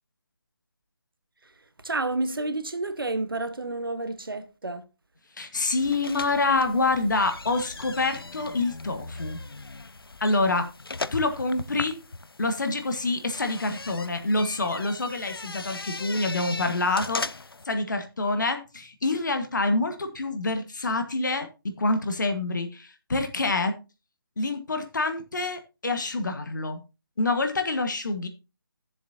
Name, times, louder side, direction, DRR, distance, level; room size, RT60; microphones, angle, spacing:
voice 1, 1.8-4.9, right 2 dB, 70° right, 1.2 m, -30 dB
voice 2, 5.4-9.4 10.2-10.7 11.1-12.0 12.4-17.2 17.6-23.7 24.4-26.8 27.2-28.3, left 2 dB, 55° left, 1.6 m, -26 dB
sound 1, 5.8-17.6, left 3 dB, 75° left, 0.5 m, -39 dB
13.0 x 7.3 x 2.8 m
figure-of-eight pair, 155°, 12 cm